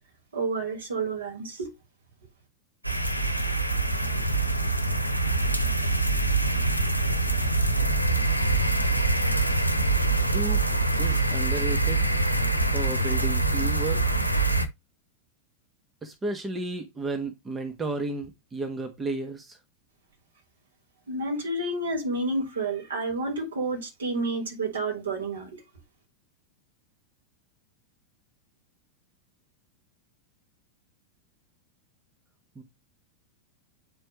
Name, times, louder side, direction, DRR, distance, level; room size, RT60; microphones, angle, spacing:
voice 1, 0.3-1.7 21.1-25.6, right 2 dB, 70° right, 3.9 m, -30 dB
sound 1, 2.8-14.7, right 2 dB, 90° left, 0.8 m, -24 dB
voice 2, 10.3-10.6 11.0-12.1 12.7-14.1 16.0-19.6 32.6-32.7, right 3 dB, 15° right, 1.2 m, -33 dB
9.3 x 4.5 x 3.0 m
figure-of-eight pair, 90°, 0 cm